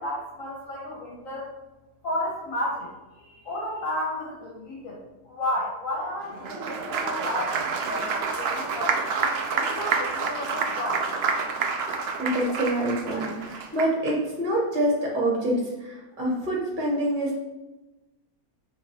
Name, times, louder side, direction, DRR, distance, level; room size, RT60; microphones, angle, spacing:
voice 1, 0.0-1.5 2.0-2.9 3.1-7.6 7.8-9.0 9.5-11.1, left 1 dB, 65° left, -3 dB, 1.3 m, -32 dB
Applause, 6.3-14.1, right 5 dB, 65° right, 0.6 m, -28 dB
voice 2, 12.2-17.4, right 1 dB, 35° right, -4 dB, 1.4 m, -26 dB
5.5 x 2.9 x 3.3 m, 1.1 s
omnidirectional pair, 1.6 m